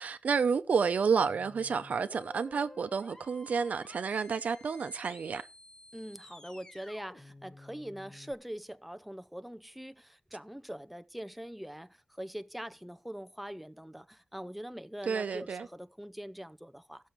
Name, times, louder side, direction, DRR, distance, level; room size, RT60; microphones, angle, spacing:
voice 1, 0.0-5.4 15.1-15.7, right 5 dB, 85° right, 0.8 m, -30 dB
sound 1, 1.2-8.3, left 2 dB, 30° left, 1.5 m, -53 dB
voice 2, 5.9-17.1, equal, ahead, 0.6 m, -43 dB
15.0 x 6.5 x 4.6 m
wide cardioid pair, 85°, 3 cm